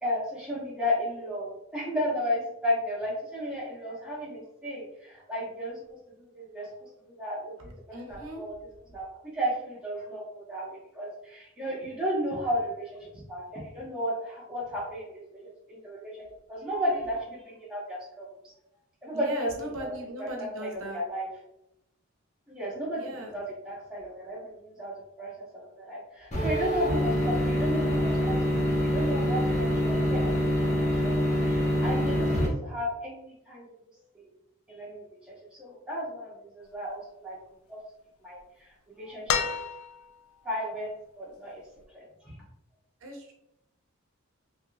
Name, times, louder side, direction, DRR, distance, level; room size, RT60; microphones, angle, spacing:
voice 1, 0.0-5.8 6.2-9.1 9.3-18.2 19.0-19.9 20.2-21.3 22.5-25.3 25.7-33.6 34.1-34.2 34.7-35.3 35.6-37.4 37.7-37.8 38.2-39.4 40.4-40.9 41.2-41.6 41.9-42.3, equal, 5° right, -8 dB, 1.0 m, -34 dB
voice 2, 7.9-8.4 19.1-21.0 23.0-23.3 43.0-43.3, equal, 80° right, 1 dB, 0.7 m, -38 dB
sound 1, 26.3-32.5, equal, 35° left, 1.0 m, -25 dB
sound 2, 39.3-40.3 41.8-41.9, left 7 dB, 85° left, 0.3 m, -30 dB
3.4 x 2.8 x 2.4 m, 0.85 s
head